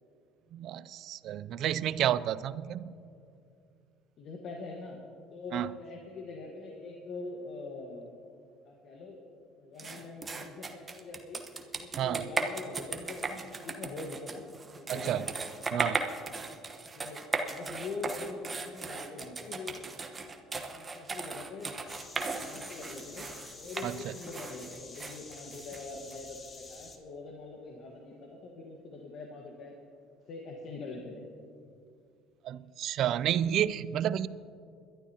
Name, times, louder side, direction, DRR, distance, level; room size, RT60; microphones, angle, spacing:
voice 1, 0.5-2.9 5.5-5.7 12.0-12.2 14.9-15.3 15.7-16.0 23.8-24.1 32.4-34.3, right 11 dB, 55° right, 16 dB, 0.4 m, -30 dB
voice 2, 4.2-5.0 5.3-8.1 8.6-9.2 9.6-11.4 11.7-14.5 14.7-15.3 16.9-17.2 17.5-19.8 20.7-21.7 22.4-23.3 23.6-29.8 30.3-31.2, left 3 dB, 55° left, 0 dB, 1.5 m, -43 dB
sound 1, 9.8-26.2, right 3 dB, 25° right, 1.1 m, -37 dB
sound 2, 21.9-27.0, left 3 dB, 30° left, 1.5 m, -49 dB
22.0 x 12.0 x 2.9 m, 2.5 s
cardioid pair, 110°, 0 cm